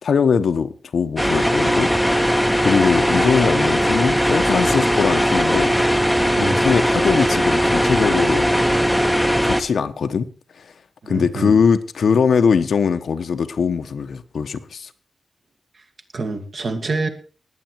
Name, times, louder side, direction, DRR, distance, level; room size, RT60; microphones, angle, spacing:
voice 1, 0.0-1.9 2.6-5.7 6.4-8.5 9.4-10.3 10.6-10.7 11.1-14.9, left 6 dB, 70° left, 1.1 m, -21 dB
sound 1, 1.2-9.6, equal, ahead, 1.0 m, -18 dB
voice 2, 11.0-11.6 16.1-17.1, right 3 dB, 45° right, 2.2 m, -26 dB
20.0 x 8.5 x 4.6 m
wide cardioid pair, 170°, 0 cm